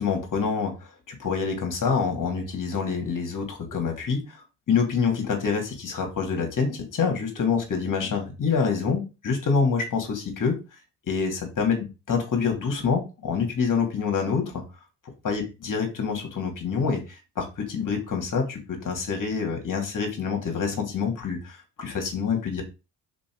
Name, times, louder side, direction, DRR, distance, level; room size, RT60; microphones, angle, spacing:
voice 1, 0.0-10.6 11.1-14.6 15.2-22.6, left 5 dB, 45° left, 3 dB, 2.8 m, -26 dB
5.1 x 4.8 x 4.8 m, 0.29 s
supercardioid pair, 80°, 44 cm